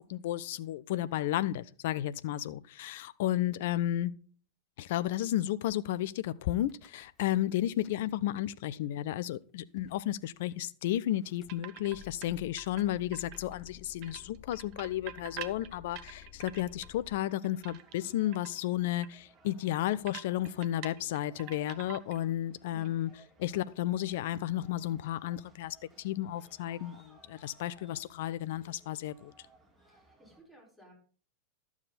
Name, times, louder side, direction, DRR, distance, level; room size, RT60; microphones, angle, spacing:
voice 1, 0.0-4.1 4.8-23.1 23.4-29.3, left 13 dB, 55° left, 0.5 m, -33 dB
Car / Engine starting / Idling, 6.6-7.4 7.6-8.4 9.1-9.2 9.4-9.5 9.8-10.0 11.0-17.2, left 9 dB, 25° left, 0.9 m, -55 dB
sound 1, 11.5-12.3 12.6-13.7 14.0-16.9 17.3-18.1 18.3-18.6 19.0-19.1 19.4-19.5 20.1-22.3 22.6-22.9, right 11 dB, 40° right, 0.8 m, -46 dB
sound 2, 16.6-30.4, right 2 dB, 15° right, 3.2 m, -62 dB
voice 2, 22.7-23.1 29.8-30.9, equal, ahead, 4.9 m, -58 dB
11.5 x 7.2 x 4.1 m
figure-of-eight pair, 90°, 0 cm